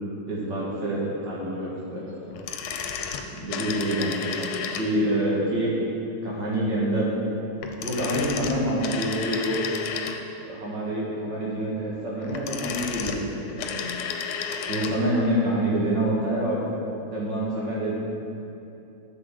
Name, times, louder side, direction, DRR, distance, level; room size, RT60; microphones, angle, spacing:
voice 1, 0.3-2.4 3.3-5.8 6.2-7.1 7.8-9.7 10.4-13.9 14.7-16.6 17.1-17.9, right 1 dB, 60° right, -6 dB, 2.4 m, -27 dB
sound 1, 2.3-5.2 7.6-10.5 12.1-15.0 15.3-15.4, left 6 dB, 85° left, 1.5 m, -32 dB
9.7 x 6.3 x 3.8 m, 2.9 s
omnidirectional pair, 2.3 m